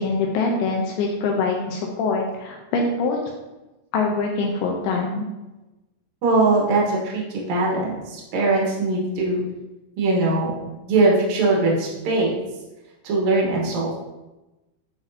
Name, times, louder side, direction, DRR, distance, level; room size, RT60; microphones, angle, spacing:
voice 1, 0.0-3.2 3.9-5.3, left 3 dB, 85° left, 0 dB, 2.3 m, -24 dB
voice 2, 6.2-9.4 10.0-10.5 10.8-12.4 13.0-14.0, right 2 dB, 75° right, -3 dB, 1.7 m, -21 dB
9.7 x 4.0 x 2.7 m, 1.1 s
omnidirectional pair, 5.2 m